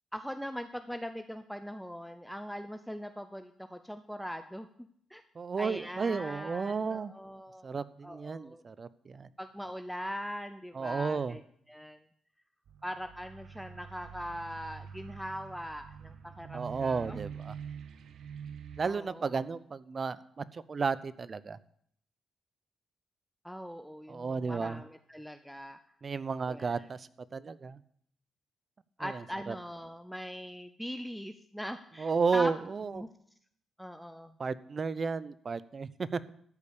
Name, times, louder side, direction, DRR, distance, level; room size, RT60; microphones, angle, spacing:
voice 1, 0.1-4.7 5.1-5.2 5.6-7.7 8.0-8.6 9.4-11.4 11.7-12.0 12.8-17.2 18.8-19.4 23.4-25.8 26.5-26.9 29.0-32.5 32.9-33.1 33.8-34.4, equal, ahead, 8 dB, 0.7 m, -41 dB
voice 2, 5.4-7.1 7.6-9.3 10.7-11.4 16.5-17.6 18.8-21.6 24.1-24.8 26.0-27.8 29.0-29.2 29.5-29.6 32.0-33.0 34.4-36.3, right 5 dB, 40° right, 17 dB, 0.6 m, -33 dB
sound 1, 12.7-18.8, right 7 dB, 75° right, 0.8 m, -46 dB
13.0 x 5.3 x 8.4 m, 0.66 s
cardioid pair, 80°, 0 cm